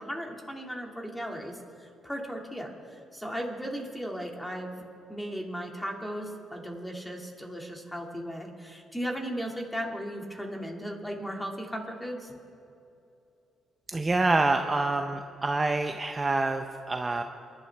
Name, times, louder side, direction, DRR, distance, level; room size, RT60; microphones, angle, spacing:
voice 1, 0.0-4.8 5.1-12.4, equal, 5° left, 1 dB, 2.2 m, -36 dB
voice 2, 13.9-17.2, right 2 dB, 25° right, 5 dB, 0.6 m, -27 dB
24.0 x 11.5 x 3.4 m, 2.7 s
cardioid pair, 90°, 0 cm